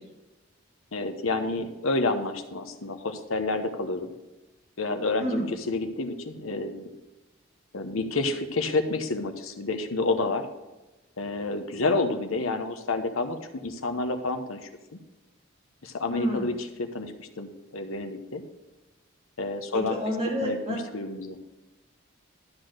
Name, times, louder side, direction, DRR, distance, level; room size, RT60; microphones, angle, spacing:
voice 1, 0.9-4.1 4.8-6.9 7.7-10.5 11.2-14.7 15.8-16.5 16.8-18.4 19.4-20.0 20.4-21.4, left 3 dB, 75° left, 7 dB, 1.0 m, -29 dB
voice 2, 16.1-16.5 19.7-20.8, equal, 30° right, -3 dB, 2.7 m, -29 dB
12.5 x 4.2 x 6.5 m, 1.1 s
head